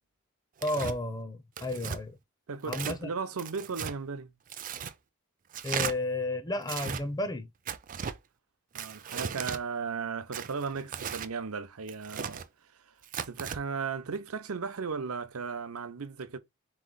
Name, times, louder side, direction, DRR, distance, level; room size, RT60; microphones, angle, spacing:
voice 1, 0.6-2.2 2.7-3.1 5.6-7.5, left 2 dB, 20° left, 0.5 m, -32 dB
Tearing, 0.6-1.0 1.6-2.0 2.6-3.0 3.4-3.9 4.5-4.9 5.5-5.9 6.6-7.0 7.7-8.2 8.7-9.6 10.3-11.3 11.9-12.5 13.0-13.6, right 7 dB, 40° right, 0.4 m, -36 dB
voice 2, 2.5-4.3 8.7-12.4 12.7-12.9 13.2-16.4, right 5 dB, 90° right, 0.7 m, -36 dB
4.0 x 3.1 x 3.8 m
head